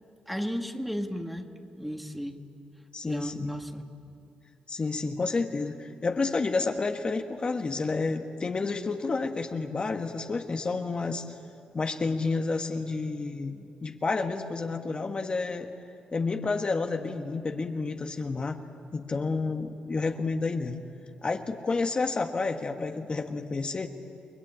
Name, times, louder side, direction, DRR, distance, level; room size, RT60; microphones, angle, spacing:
voice 1, 0.3-1.5 1.7-2.4 3.0-3.8, equal, ahead, 5 dB, 1.9 m, -34 dB
voice 2, 2.9-3.5 4.7-11.3 11.7-15.7 16.1-18.6 18.9-20.8 21.2-23.9, left 3 dB, 35° left, 5 dB, 1.4 m, -30 dB
29.5 x 21.0 x 8.8 m, 2.6 s
cardioid pair, 75°, 3 cm